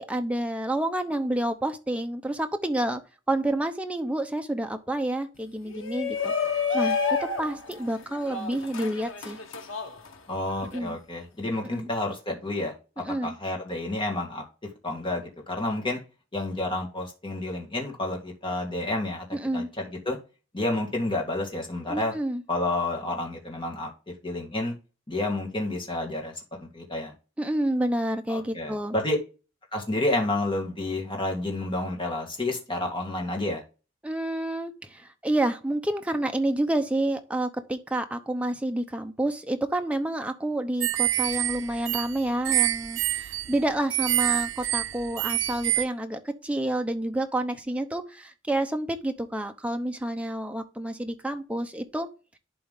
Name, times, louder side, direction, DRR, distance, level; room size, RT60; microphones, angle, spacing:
voice 1, 0.0-3.0 3.3-9.4 10.7-11.0 11.6-11.9 13.0-13.3 19.3-19.7 21.9-22.4 27.4-28.9 34.0-52.1, right 1 dB, 5° right, 0.8 m, -29 dB
Shout, 5.7-10.8, left 5 dB, 90° left, 1.3 m, -30 dB
voice 2, 10.3-14.4 14.8-16.0 16.3-19.2 19.5-20.2 20.5-22.1 22.5-24.7 25.1-26.3 26.7-27.1 28.3-29.2 29.7-33.6, left 2 dB, 25° left, 2.2 m, -30 dB
sound 1, 40.8-45.8, right 15 dB, 75° right, 0.4 m, -27 dB
11.0 x 3.9 x 3.7 m
head